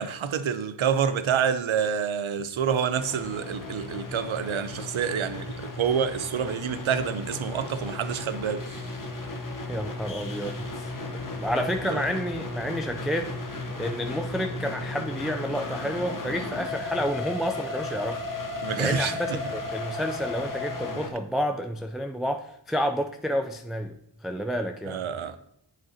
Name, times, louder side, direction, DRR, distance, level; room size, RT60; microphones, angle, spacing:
voice 1, 0.0-8.7 11.9-12.0 18.6-19.4 24.9-25.4, right 7 dB, 80° right, 0.6 m, -27 dB
sound 1, 2.9-21.1, left 2 dB, 40° left, 1.0 m, -35 dB
voice 2, 9.7-10.9 11.4-13.3 13.8-18.2 18.8-24.0 24.2-25.0, equal, ahead, 0.4 m, -30 dB
7.7 x 7.4 x 2.8 m
wide cardioid pair, 55°, 48 cm